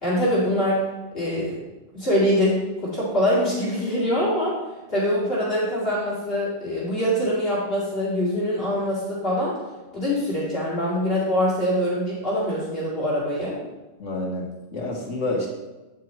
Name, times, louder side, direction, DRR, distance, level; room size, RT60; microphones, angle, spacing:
voice 1, 0.0-0.8 1.1-1.6 1.9-4.5 4.9-9.5 9.9-13.6, equal, 50° left, -8 dB, 2.7 m, -24 dB
voice 2, 14.0-15.5, left 2 dB, 80° left, 0 dB, 1.7 m, -28 dB
9.2 x 9.0 x 3.1 m, 1.1 s
omnidirectional pair, 1.2 m